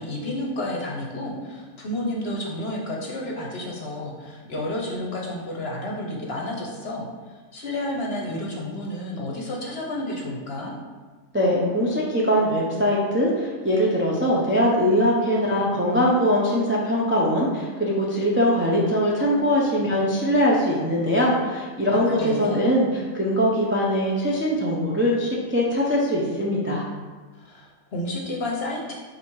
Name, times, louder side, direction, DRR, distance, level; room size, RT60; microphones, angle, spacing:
voice 1, 0.0-7.1 7.5-10.7 21.9-22.6 27.4-28.9, left 1 dB, 45° left, -2 dB, 1.0 m, -31 dB
voice 2, 11.3-26.8, equal, 15° right, -4 dB, 0.4 m, -22 dB
7.4 x 2.8 x 4.7 m, 1.4 s
omnidirectional pair, 1.6 m